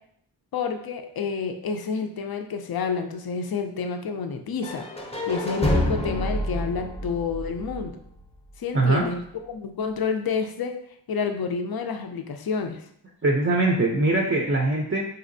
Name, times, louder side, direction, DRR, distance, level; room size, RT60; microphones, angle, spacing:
voice 1, 0.5-4.9 5.3-8.0 8.6-10.7 11.1-12.8, left 5 dB, 55° left, 6 dB, 0.5 m, -29 dB
sound 1, 4.6-8.5, left 1 dB, 15° left, 0.7 m, -28 dB
voice 2, 8.7-9.1 13.2-15.0, right 2 dB, 30° right, 0 dB, 0.5 m, -22 dB
4.2 x 2.8 x 2.6 m, 0.68 s
cardioid pair, 45°, 45 cm